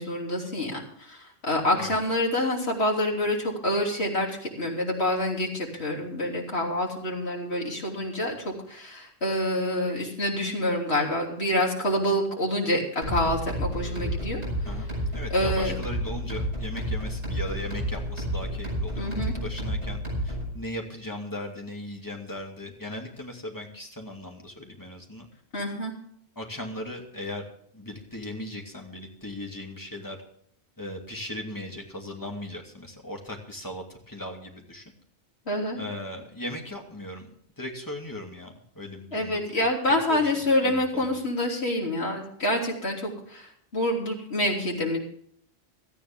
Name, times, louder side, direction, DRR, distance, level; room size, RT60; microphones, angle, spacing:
voice 1, 0.0-4.3 4.6-14.4 15.3-15.8 19.0-19.4 25.5-25.9 35.5-35.8 39.1-45.0, left 1 dB, 75° left, -1 dB, 3.5 m, -27 dB
sound 1, 13.0-20.5, equal, 65° right, 7.4 m, -31 dB
voice 2, 14.6-20.0 20.2-25.3 26.4-27.4 27.7-30.2 30.8-34.8 35.8-37.3 37.6-39.6 40.1-40.2 40.6-41.2, left 1 dB, 15° left, 1 dB, 2.5 m, -38 dB
17.0 x 13.5 x 3.6 m, 0.63 s
omnidirectional pair, 1.1 m